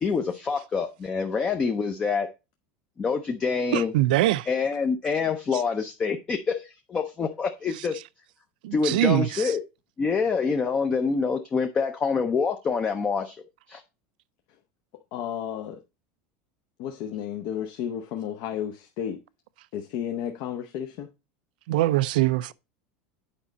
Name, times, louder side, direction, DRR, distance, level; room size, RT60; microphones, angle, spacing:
voice 1, 0.0-2.3 3.0-3.9 4.5-8.0 8.7-9.6 10.0-13.4 13.7-13.8, left 5 dB, 20° left, 0.6 m, -26 dB
voice 2, 3.7-4.5 8.6-9.4 21.7-22.5, right 15 dB, 80° right, 0.4 m, -23 dB
voice 3, 15.1-15.8 16.8-19.2 19.7-21.1, left 9 dB, 50° left, 0.8 m, -32 dB
8.7 x 5.1 x 4.0 m
supercardioid pair, 165°, 5 cm